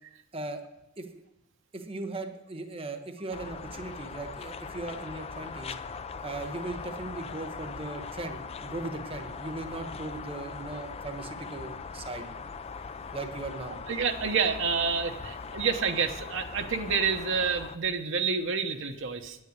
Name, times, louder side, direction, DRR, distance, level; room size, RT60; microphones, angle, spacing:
voice 1, 0.3-0.6 1.0-1.1 1.7-5.8 6.2-12.3 13.1-13.8, right 2 dB, 30° right, 6 dB, 1.1 m, -38 dB
sound 1, 3.3-17.8, left 5 dB, 30° left, 0.5 m, -40 dB
voice 2, 13.9-19.4, right 5 dB, 65° right, 5 dB, 1.0 m, -28 dB
10.0 x 9.1 x 9.6 m, 0.91 s
head